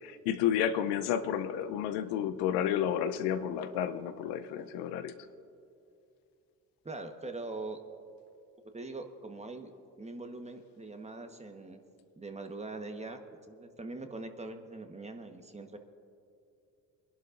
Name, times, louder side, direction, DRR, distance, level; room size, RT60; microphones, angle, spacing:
voice 1, 0.0-5.2, left 9 dB, 80° left, 10 dB, 0.7 m, -31 dB
voice 2, 6.8-7.8 8.7-9.7 10.0-11.8 12.2-13.2 13.5-15.8, right 2 dB, 15° right, 6 dB, 1.2 m, -42 dB
24.5 x 11.5 x 2.5 m, 2.6 s
supercardioid pair, 70°, 41 cm